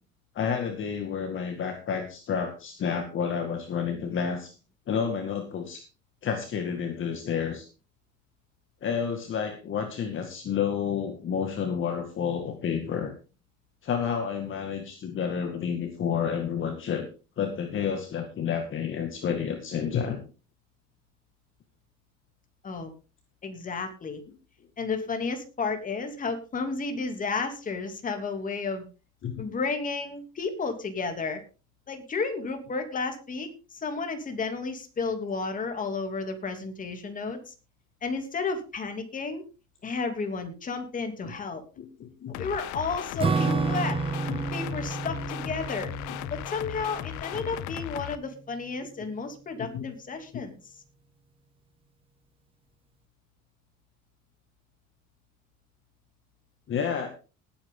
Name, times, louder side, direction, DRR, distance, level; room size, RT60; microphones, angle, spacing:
voice 1, 0.3-4.5 4.9-5.8 6.2-7.7 8.8-13.1 13.8-17.1 17.4-20.2 29.2-29.4 41.8-42.5 43.4-43.5 44.3-44.4 47.3-47.4 49.6-49.9 50.3-50.4 56.7-57.1, left 7 dB, 45° left, 5 dB, 2.1 m, -30 dB
voice 2, 23.4-24.2 24.8-28.9 29.4-31.4 31.9-37.5 38.0-39.4 39.8-41.6 42.4-44.0 44.5-45.9 46.3-50.5, left 4 dB, 25° left, 5 dB, 2.9 m, -32 dB
sound 1, 42.3-48.1, left 15 dB, 75° left, 0.8 m, -37 dB
Acoustic guitar / Strum, 43.2-48.0, right 4 dB, 20° right, 0.7 m, -31 dB
19.0 x 9.0 x 3.8 m, 0.33 s
cardioid pair, 145°, 29 cm